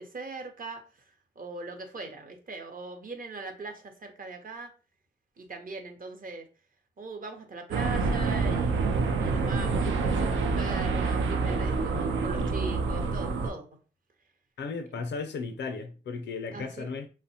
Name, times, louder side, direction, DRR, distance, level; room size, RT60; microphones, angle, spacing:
voice 1, 0.0-4.7 5.4-6.4 7.0-13.7 14.9-15.0 16.5-16.9, right 3 dB, 45° right, 0.7 m, -40 dB
sound 1, 7.7-13.5, right 4 dB, 85° right, 0.4 m, -27 dB
voice 2, 14.6-17.1, left 4 dB, 65° left, 0.5 m, -35 dB
2.8 x 2.1 x 2.7 m
cardioid pair, 75°, 19 cm